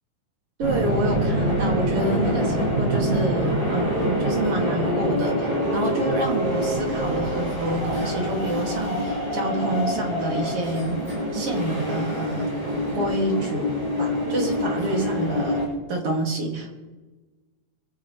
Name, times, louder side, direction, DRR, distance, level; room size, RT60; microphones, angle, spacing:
sound 1, 0.6-15.7, equal, 20° right, 7.1 m, -25 dB
voice 1, 0.6-11.0 11.3-12.5 12.9-13.7 14.0-16.8, right 2 dB, 50° right, 1 dB, 3.1 m, -28 dB
25.0 x 15.0 x 3.2 m, 1.2 s
omnidirectional pair, 3.5 m